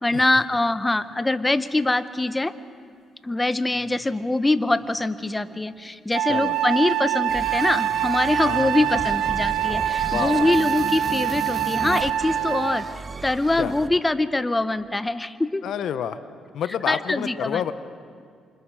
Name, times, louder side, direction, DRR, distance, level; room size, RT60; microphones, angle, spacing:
voice 1, 0.0-2.5 3.2-12.9 13.2-15.6 16.9-17.6, left 2 dB, 15° left, 12 dB, 0.9 m, -23 dB
sound 1, 0.9-1.1 1.8-1.9 3.7-5.0 5.3-5.7 6.0-6.1 6.6-7.2 7.9-8.9, right 2 dB, 50° right, 6.2 m, -51 dB
Wind instrument woodwind instrument, 6.1-12.9, right 11 dB, 85° right, 0.6 m, -25 dB
sound 2, 7.3-14.0, right 4 dB, 35° right, 1.1 m, -35 dB
voice 2, 8.4-8.9 9.9-10.5 13.6-13.7 15.6-16.2 16.5-17.7, left 9 dB, 75° left, 11 dB, 1.0 m, -29 dB
27.5 x 25.5 x 4.9 m, 2.1 s
cardioid pair, 90°, 0 cm